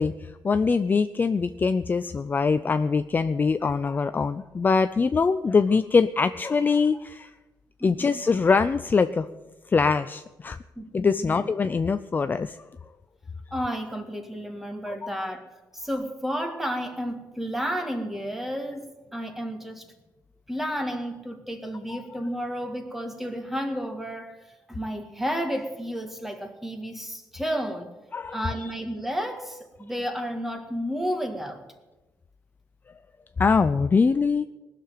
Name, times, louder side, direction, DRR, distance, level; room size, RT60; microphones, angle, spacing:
voice 1, 0.0-7.3 7.8-9.3 9.7-10.6 10.9-12.6 14.9-15.1 21.9-22.0 28.1-28.5 33.4-34.4, left 5 dB, 25° left, 11 dB, 0.4 m, -23 dB
voice 2, 7.8-8.2 10.8-11.5 13.5-19.8 20.5-24.4 24.7-27.9 28.3-31.6, equal, 5° right, 6 dB, 1.8 m, -32 dB
19.5 x 6.8 x 9.1 m, 1.1 s
cardioid pair, 140°, 7 cm